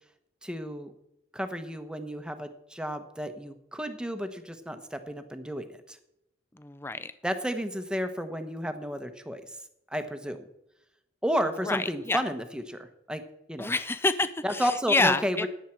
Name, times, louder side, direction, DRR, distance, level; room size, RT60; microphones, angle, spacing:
voice 1, 0.4-0.9 1.3-5.7 7.2-9.4 9.9-10.4 11.2-13.2 13.5-13.7 14.4-15.5, equal, 5° right, 8 dB, 1.0 m, -32 dB
voice 2, 6.6-7.1 11.6-12.2 13.6-15.5, left 3 dB, 15° left, 13 dB, 0.4 m, -28 dB
14.5 x 10.0 x 4.5 m, 0.84 s
head